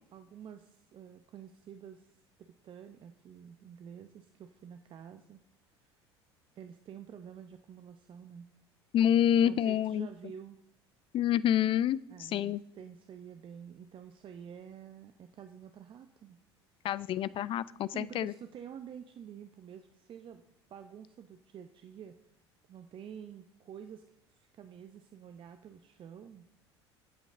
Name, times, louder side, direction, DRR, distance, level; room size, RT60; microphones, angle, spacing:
voice 1, 0.1-2.1 2.4-5.4 5.8-5.9 6.6-8.5 9.4-10.6 12.1-16.4 17.9-20.4 20.7-22.2 22.7-24.0 24.3-26.5, right 8 dB, 35° right, 8 dB, 0.8 m, -49 dB
voice 2, 8.9-10.1 11.1-12.6 16.8-18.3, left 10 dB, 40° left, 19 dB, 0.5 m, -28 dB
24.0 x 8.4 x 3.7 m, 0.77 s
figure-of-eight pair, 65°, 14 cm